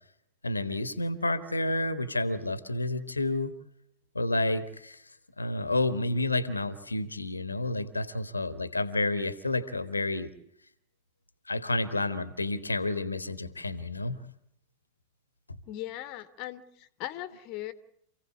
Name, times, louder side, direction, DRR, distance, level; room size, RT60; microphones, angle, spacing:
voice 1, 0.4-3.5 4.1-5.0 5.4-10.3 11.5-14.2, left 2 dB, 80° left, 1.2 m, -30 dB
voice 2, 15.7-17.7, left 14 dB, 40° left, 1.2 m, -39 dB
28.0 x 16.5 x 8.4 m
figure-of-eight pair, 90°, 0 cm